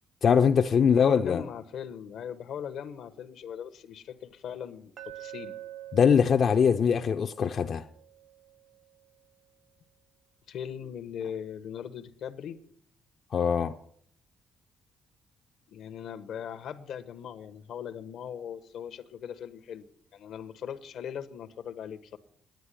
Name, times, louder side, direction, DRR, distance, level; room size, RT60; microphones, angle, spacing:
voice 1, 0.2-1.4 5.9-7.9 13.3-13.8, left 7 dB, 55° left, 0.6 m, -22 dB
voice 2, 0.7-5.6 10.5-12.6 15.7-22.2, left 8 dB, 75° left, 1.0 m, -40 dB
Glass, 5.0-9.1, right 12 dB, 55° right, 0.8 m, -47 dB
10.5 x 9.4 x 9.8 m
cardioid pair, 90°, 0 cm